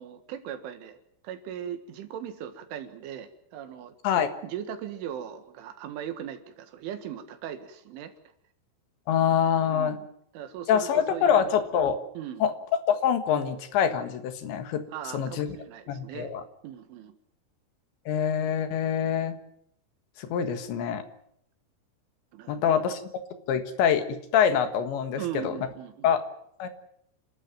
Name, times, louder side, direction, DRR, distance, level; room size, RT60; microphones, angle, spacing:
voice 1, 0.0-8.1 9.7-10.1 10.3-11.5 12.2-12.5 14.9-16.3 16.6-17.2 22.3-22.8 25.1-26.2, right 9 dB, 85° right, 8 dB, 4.2 m, -39 dB
voice 2, 9.1-10.0 10.7-12.0 12.4-12.5 12.9-14.8 15.1-15.5 15.9-16.4 18.1-19.4 20.2-21.0 22.5-23.0 23.5-25.5 26.0-26.2 26.6-26.7, left 8 dB, 75° left, 9 dB, 3.8 m, -25 dB
28.5 x 13.0 x 9.1 m, 0.70 s
omnidirectional pair, 5.4 m